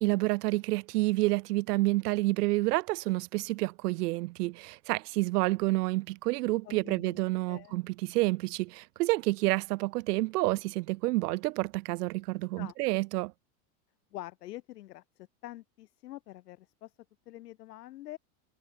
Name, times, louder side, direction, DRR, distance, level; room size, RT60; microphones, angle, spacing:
voice 1, 0.0-13.3, right 21 dB, 80° right, 0.9 m, -29 dB
voice 2, 6.6-7.2 7.5-7.8 12.6-12.8 14.1-16.9 17.3-18.2, left 15 dB, 85° left, 4.8 m, -45 dB
supercardioid pair, 125°, 46 cm